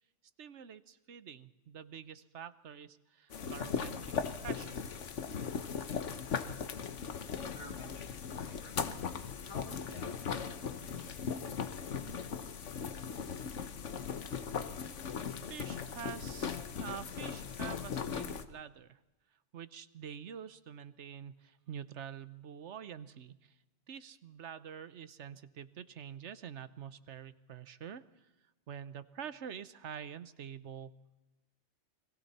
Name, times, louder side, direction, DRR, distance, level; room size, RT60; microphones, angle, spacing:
voice 1, 0.4-4.8 15.5-19.0 19.5-23.6 23.9-28.3 28.7-30.9, right 8 dB, 70° right, 14 dB, 1.2 m, -47 dB
sound 1, 3.3-18.4, left 6 dB, 75° left, 1.4 m, -38 dB
voice 2, 7.5-8.0 8.3-8.8 9.5-10.5 10.8-11.3, left 1 dB, 50° left, 1 dB, 5.1 m, -52 dB
29.5 x 22.0 x 4.3 m, 1.0 s
omnidirectional pair, 1.2 m